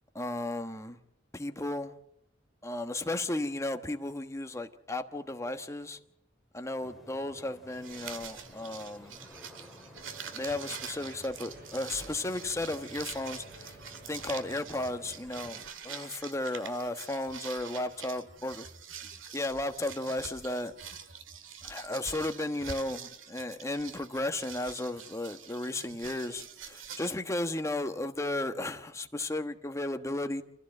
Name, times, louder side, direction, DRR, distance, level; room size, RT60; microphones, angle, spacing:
voice 1, 0.1-1.0 1.3-1.9 2.6-6.0 6.5-9.2 10.3-13.7 14.1-18.7 19.3-20.7 21.6-30.4, left 2 dB, 15° left, 1.2 m, -34 dB
sound 1, 6.8-15.7, equal, ahead, 3.1 m, -54 dB
sound 2, 7.7-27.1, right 7 dB, 90° right, 2.0 m, -45 dB
sound 3, 10.0-15.0, right 2 dB, 55° right, 4.1 m, -53 dB
27.0 x 15.5 x 7.8 m
head